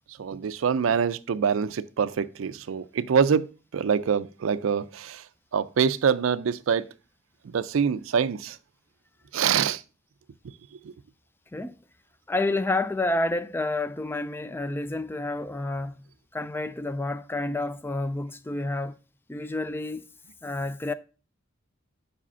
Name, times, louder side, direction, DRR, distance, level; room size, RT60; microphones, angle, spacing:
voice 1, 0.1-3.5 3.7-5.3 5.5-6.8 7.4-8.6 9.3-9.8 10.8-10.9, right 7 dB, 85° right, 0.4 m, -25 dB
voice 2, 12.3-16.0 16.3-19.0 19.3-20.1 20.4-20.9, left 2 dB, 10° left, 0.3 m, -29 dB
5.0 x 4.9 x 5.5 m
head